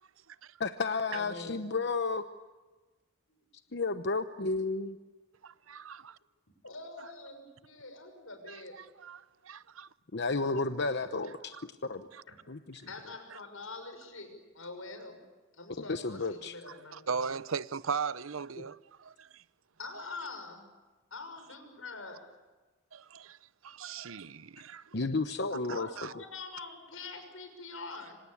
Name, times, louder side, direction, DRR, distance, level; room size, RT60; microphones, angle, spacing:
voice 1, 0.6-2.2 3.7-5.0 10.1-11.5 11.8-12.1 12.5-12.9 15.9-16.5 18.6-18.7 24.9-25.9, left 3 dB, 55° left, 0.9 m, -32 dB
voice 2, 1.1-1.6 3.4-3.5 6.6-8.8 12.3-12.4 12.9-15.2 15.5-17.0 19.8-20.6 21.1-22.2 25.7-28.2, left 3 dB, 85° left, 6.3 m, -45 dB
voice 3, 5.4-6.2 8.5-9.9 11.5-11.6 12.1-12.2 16.7-19.4 22.9-23.4 23.6-24.8 25.7-26.1, right 5 dB, 85° right, 0.8 m, -39 dB
26.5 x 26.0 x 8.5 m
head